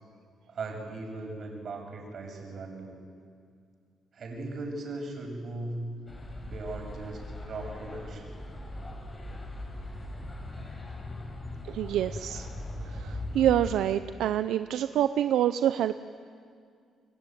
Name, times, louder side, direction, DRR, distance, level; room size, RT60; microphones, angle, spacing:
voice 1, 0.5-3.0 4.1-5.8 6.4-8.3, right 2 dB, 55° right, 3 dB, 7.1 m, -38 dB
sound 1, 6.1-13.7, left 2 dB, 25° left, 7.0 m, -39 dB
voice 2, 11.6-12.5 12.9-15.9, right 11 dB, 80° right, 11 dB, 0.7 m, -26 dB
29.5 x 21.5 x 9.3 m, 2.2 s
cardioid pair, 90°, 0 cm